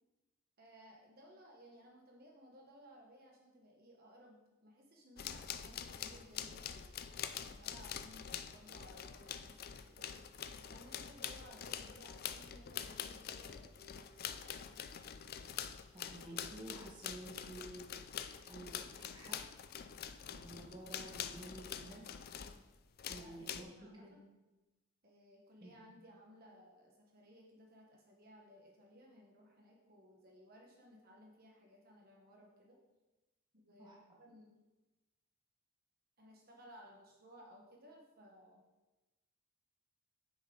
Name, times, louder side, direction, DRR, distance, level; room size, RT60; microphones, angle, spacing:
voice 1, 0.6-6.9 7.4-10.1 10.6-14.8 23.2-24.2 25.0-32.8 33.5-34.5 36.2-38.6, equal, 45° right, -1 dB, 1.3 m, -60 dB
sound 1, 5.2-22.6 23.0-23.6, left 8 dB, 45° left, 0.4 m, -45 dB
voice 2, 15.9-18.0 18.5-19.5 20.3-22.1 23.1-24.2 25.6-25.9 33.8-34.0, right 2 dB, 20° right, -2 dB, 1.5 m, -51 dB
9.6 x 6.8 x 3.9 m, 1.1 s
head